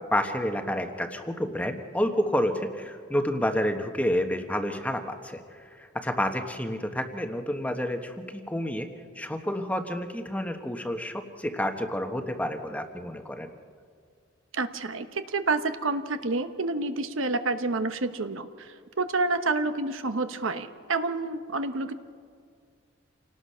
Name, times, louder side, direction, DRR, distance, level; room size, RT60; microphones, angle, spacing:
voice 1, 0.1-8.9 9.1-13.5, left 1 dB, 5° left, 5 dB, 1.2 m, -29 dB
voice 2, 14.5-21.9, right 3 dB, 85° right, 9 dB, 1.1 m, -29 dB
28.0 x 18.5 x 5.7 m, 2.1 s
head